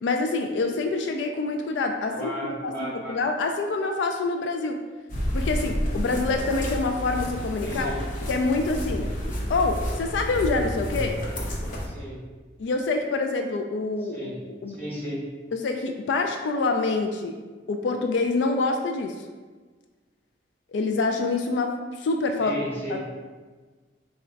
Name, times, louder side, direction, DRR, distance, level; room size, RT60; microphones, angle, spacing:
voice 1, 0.0-4.8 5.3-7.9 8.3-9.1 9.5-11.2 12.6-14.4 14.6-14.8 15.5-17.3 17.7-19.2 20.7-23.1, left 3 dB, 80° left, 4 dB, 0.3 m, -26 dB
voice 2, 2.1-3.2 7.6-8.0 11.8-12.2 14.1-14.4 14.7-15.2 22.4-23.0, equal, 10° left, -7 dB, 1.3 m, -34 dB
sound 1, 5.1-11.9, equal, 45° left, 0.7 m, -30 dB
4.1 x 2.4 x 4.5 m, 1.4 s
head